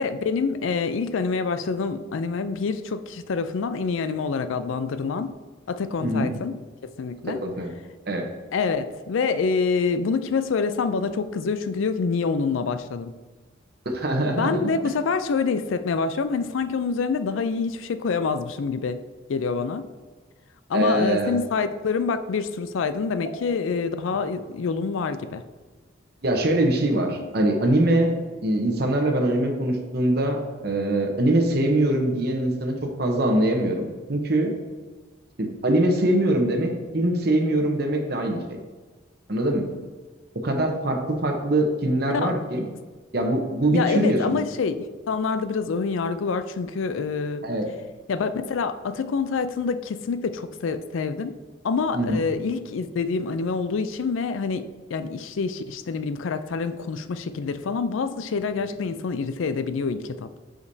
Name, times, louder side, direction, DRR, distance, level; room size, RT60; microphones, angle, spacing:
voice 1, 0.0-5.3 5.7-6.5 7.0-7.4 8.5-13.1 14.4-19.0 19.3-19.8 20.7-25.4 42.1-42.3 43.7-47.4 48.1-51.3 51.6-60.4, left 5 dB, 75° left, 11 dB, 0.4 m, -26 dB
voice 2, 6.0-6.3 7.3-7.7 8.1-8.3 13.8-14.6 20.7-21.4 26.2-28.1 28.4-30.4 30.6-34.5 35.4-38.4 39.3-39.6 40.3-42.7 43.1-44.4 47.4-47.7 51.9-52.2, right 1 dB, 50° right, 3 dB, 0.9 m, -23 dB
8.1 x 5.0 x 2.7 m, 1.3 s
head